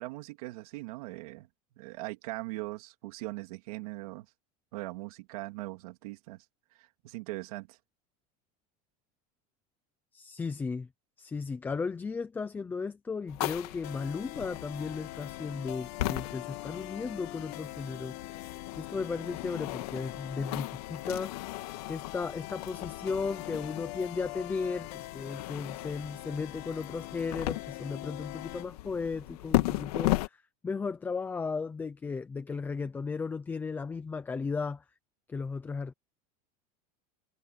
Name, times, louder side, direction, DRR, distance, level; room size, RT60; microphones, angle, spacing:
voice 1, 0.0-1.5 1.8-4.2 4.7-6.4 6.8-7.8, right 21 dB, 75° right, 2.8 m, -40 dB
voice 2, 10.1-10.9 11.2-21.4 21.9-34.8 35.3-35.9, left 4 dB, 10° left, 0.6 m, -35 dB
sound 1, 13.3-30.3, left 18 dB, 80° left, 2.1 m, -37 dB
sound 2, 13.8-28.7, left 19 dB, 50° left, 1.6 m, -43 dB
supercardioid pair, 175°, 19 cm